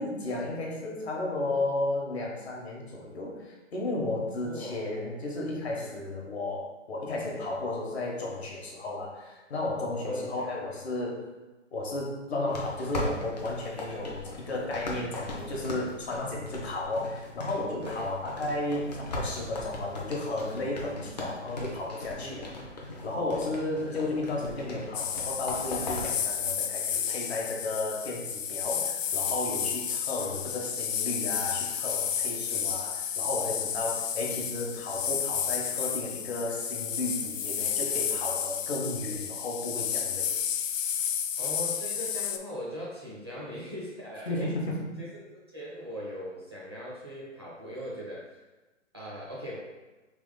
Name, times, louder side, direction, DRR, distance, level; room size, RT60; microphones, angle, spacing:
voice 1, 0.0-11.3 11.7-22.5 23.0-40.3 44.3-44.9, left 2 dB, 55° left, -2 dB, 1.1 m, -33 dB
voice 2, 4.4-4.8 5.7-6.1 10.0-10.7 17.8-18.1 22.2-22.7 23.8-24.0 30.1-30.3 32.4-32.6 41.4-44.5 45.0-45.1 45.3-48.3 48.9-49.6, equal, 20° right, -7 dB, 0.4 m, -40 dB
sound 1, 12.5-26.2, left 2 dB, 35° left, 0.5 m, -39 dB
sound 2, 24.9-42.4, left 8 dB, 80° left, 0.5 m, -31 dB
3.4 x 2.9 x 3.8 m, 1.2 s
hypercardioid pair, 160°, 38 cm